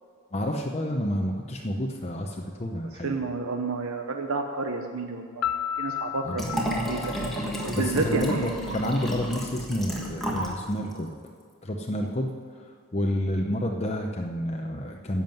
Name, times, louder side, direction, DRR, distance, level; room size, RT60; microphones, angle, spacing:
voice 1, 0.3-3.2 6.2-6.5 7.8-11.1 11.6-12.3 12.9-15.2, equal, 30° left, 2 dB, 0.7 m, -29 dB
voice 2, 3.0-5.5 5.8-7.1 7.6-8.7, right 3 dB, 85° right, 4 dB, 0.8 m, -30 dB
Piano, 5.4-8.2, left 10 dB, 85° left, 0.4 m, -33 dB
Liquid, 6.3-10.6 10.9-11.0, equal, ahead, 1.6 m, -31 dB
11.0 x 7.4 x 9.0 m, 2.1 s
head